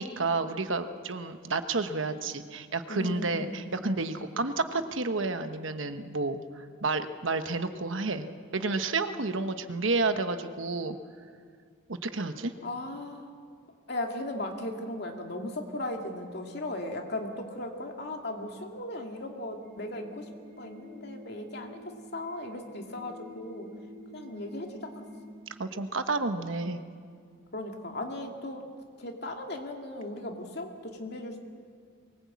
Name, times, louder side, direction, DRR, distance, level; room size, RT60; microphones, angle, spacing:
voice 1, 0.0-8.3 8.5-11.0 11.9-12.5 25.6-26.8, right 3 dB, 70° right, 9 dB, 1.1 m, -30 dB
voice 2, 2.9-3.7 12.6-13.3 13.9-20.3 20.6-21.8 22.1-23.7 24.1-25.0 27.5-28.6 29.0-31.4, left 1 dB, 50° left, 3 dB, 2.3 m, -37 dB
sound 1, 19.6-25.3, left 1 dB, 50° right, 4.8 m, -48 dB
23.0 x 19.5 x 8.5 m, 2.1 s
head